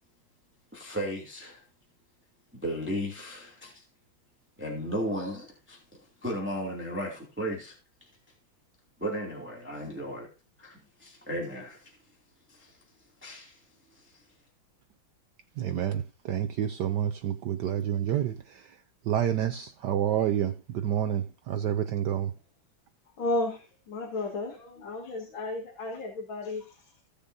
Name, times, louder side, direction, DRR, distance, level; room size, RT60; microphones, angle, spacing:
voice 1, 0.7-1.6 2.5-3.8 4.6-5.8 6.2-7.8 9.0-10.3 10.6-12.0 12.5-12.8 13.2-13.6 13.9-14.2, equal, 5° right, 2.5 m, -35 dB
voice 2, 15.6-18.8 19.1-22.3, right 10 dB, 70° right, 1.0 m, -29 dB
voice 3, 23.2-27.0, left 2 dB, 70° left, 2.8 m, -33 dB
16.5 x 6.8 x 2.7 m
omnidirectional pair, 2.3 m